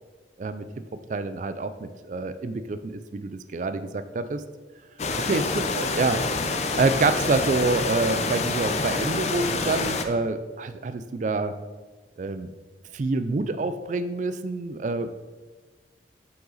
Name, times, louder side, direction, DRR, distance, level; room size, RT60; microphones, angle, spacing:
voice 1, 1.1-4.4 5.2-6.2 6.7-11.5 12.2-12.5 12.9-15.1, right 3 dB, 40° right, 11 dB, 0.3 m, -27 dB
sound 1, 5.0-10.1, left 3 dB, 35° left, 0.5 m, -27 dB
7.7 x 5.7 x 4.0 m, 1.3 s
head